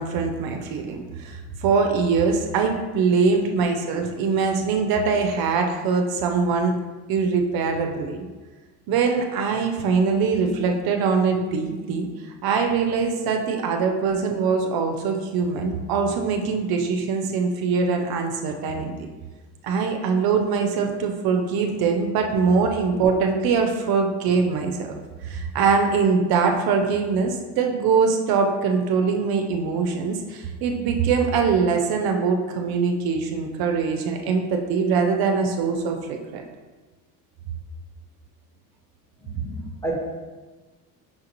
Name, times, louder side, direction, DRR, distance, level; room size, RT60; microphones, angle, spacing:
voice 1, 0.0-6.7 7.1-8.3 8.9-18.9 19.6-24.9 25.2-36.4, right 5 dB, 65° right, 3 dB, 0.6 m, -23 dB
voice 2, 39.2-40.0, right 2 dB, 5° left, -4 dB, 1.1 m, -31 dB
5.6 x 2.5 x 2.9 m, 1.3 s
supercardioid pair, 95°, 39 cm